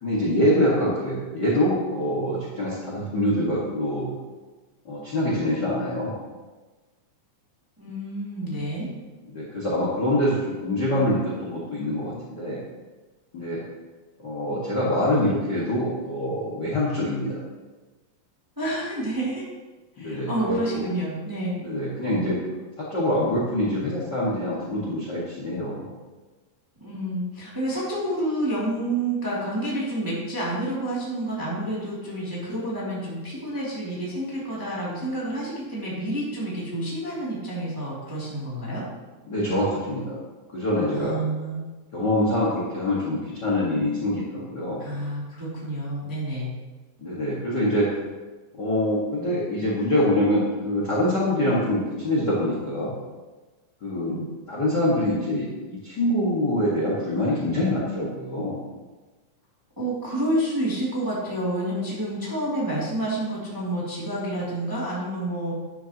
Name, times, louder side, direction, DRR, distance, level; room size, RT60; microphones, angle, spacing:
voice 1, 0.0-4.1 4.9-6.2 9.3-12.6 13.3-13.6 14.2-17.4 20.0-20.8 21.6-22.4 22.8-25.9 39.3-40.2 40.5-41.1 41.9-44.8 47.0-47.9 48.5-52.9 53.8-54.2 54.5-58.6, left 1 dB, 40° left, -5 dB, 1.8 m, -25 dB
voice 2, 7.8-8.9 18.6-19.4 20.0-21.6 22.1-22.4 26.8-38.8 40.9-41.7 44.8-46.5 54.0-54.2 59.8-65.5, right 1 dB, 5° right, -7 dB, 2.0 m, -29 dB
12.0 x 10.5 x 3.0 m, 1.2 s
omnidirectional pair, 4.0 m